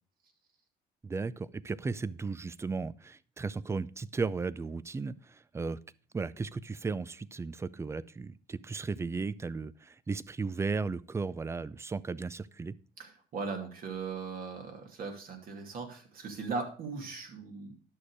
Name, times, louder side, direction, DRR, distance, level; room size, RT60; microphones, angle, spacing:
voice 1, 1.0-5.8 6.1-12.8, right 4 dB, 15° right, 20 dB, 0.4 m, -35 dB
voice 2, 13.0-17.7, right 4 dB, 60° right, 3 dB, 2.7 m, -38 dB
11.0 x 6.5 x 4.8 m, 0.40 s
cardioid pair, 110°, 17 cm